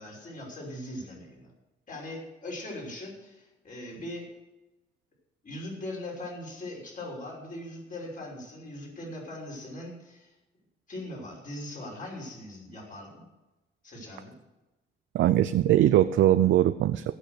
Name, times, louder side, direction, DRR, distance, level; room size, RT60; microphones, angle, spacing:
voice 1, 0.0-1.5 1.9-4.3 5.4-10.3 10.9-13.2 13.8-14.3, left 1 dB, 40° left, -2 dB, 5.8 m, -40 dB
voice 2, 15.1-17.1, right 12 dB, 70° right, 10 dB, 0.6 m, -21 dB
16.5 x 6.4 x 6.6 m, 1.0 s
cardioid pair, 90°, 20 cm